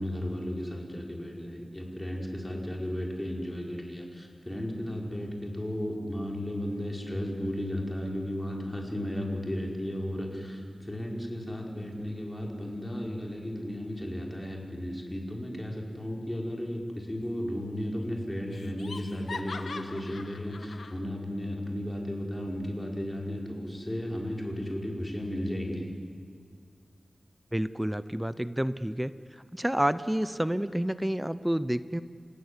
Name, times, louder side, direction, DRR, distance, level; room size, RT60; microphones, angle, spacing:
voice 1, 0.0-25.9, equal, 15° left, 0 dB, 4.9 m, -34 dB
Laughter, 17.2-17.7 18.0-18.1 18.5-21.0, left 4 dB, 85° left, 1.4 m, -42 dB
voice 2, 27.5-29.1 29.5-32.0, equal, 10° right, 14 dB, 0.7 m, -29 dB
29.5 x 15.0 x 9.8 m, 2.1 s
wide cardioid pair, 75°, 0 cm